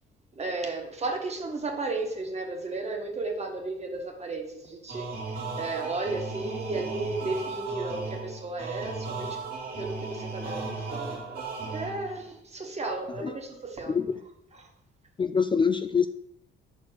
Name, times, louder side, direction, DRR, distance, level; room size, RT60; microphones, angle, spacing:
voice 1, 0.3-9.4 9.8-14.0 14.6-14.7, right 3 dB, 35° right, 2 dB, 1.7 m, -34 dB
sound 1, 4.9-12.3, right 3 dB, 50° right, 2.2 m, -36 dB
voice 2, 13.9-14.2 15.2-16.1, left 6 dB, 25° left, 9 dB, 0.3 m, -25 dB
5.7 x 4.4 x 6.0 m, 0.76 s
cardioid pair, 90°, 20 cm